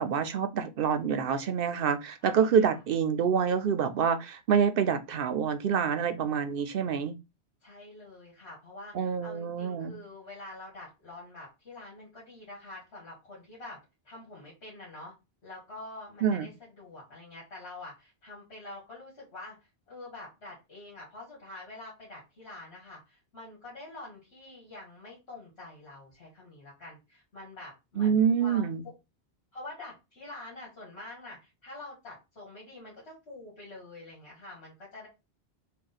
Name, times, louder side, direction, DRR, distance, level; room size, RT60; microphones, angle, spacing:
voice 1, 0.0-7.2 8.9-10.0 16.2-16.5 28.0-28.8, right 7 dB, 65° right, 0.7 m, -27 dB
voice 2, 2.2-2.8 7.6-13.8 14.0-15.1 15.4-28.7 29.5-35.1, left 2 dB, 70° left, 1.9 m, -46 dB
3.6 x 2.3 x 4.0 m
omnidirectional pair, 1.1 m